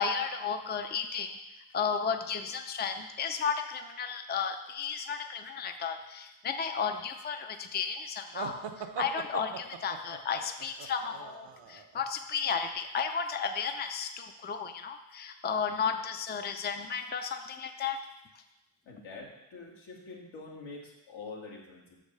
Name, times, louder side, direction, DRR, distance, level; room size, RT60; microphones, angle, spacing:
voice 1, 0.0-1.3 1.7-18.1, left 6 dB, 20° left, 7 dB, 0.5 m, -33 dB
sound 1, 8.3-12.0, right 7 dB, 65° right, 0.8 m, -41 dB
voice 2, 18.9-22.0, left 3 dB, 80° left, -2 dB, 2.0 m, -45 dB
6.3 x 5.1 x 6.6 m, 0.96 s
cardioid pair, 95°, 46 cm